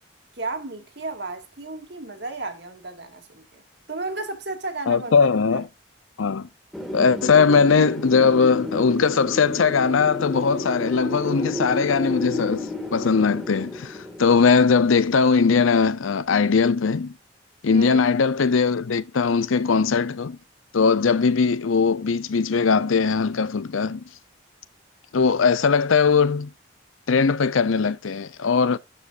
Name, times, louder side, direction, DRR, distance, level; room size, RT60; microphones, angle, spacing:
voice 1, 0.4-3.6 3.9-5.2 17.7-18.1, right 2 dB, 55° right, 2.0 m, -33 dB
voice 2, 4.9-5.7 6.2-6.5 6.9-17.1 17.6-20.4 20.7-24.0 25.1-26.5 27.1-28.8, left 5 dB, 85° left, 0.6 m, -20 dB
Wind, 6.7-15.4, left 2 dB, ahead, 1.9 m, -32 dB
12.5 x 5.1 x 2.5 m
head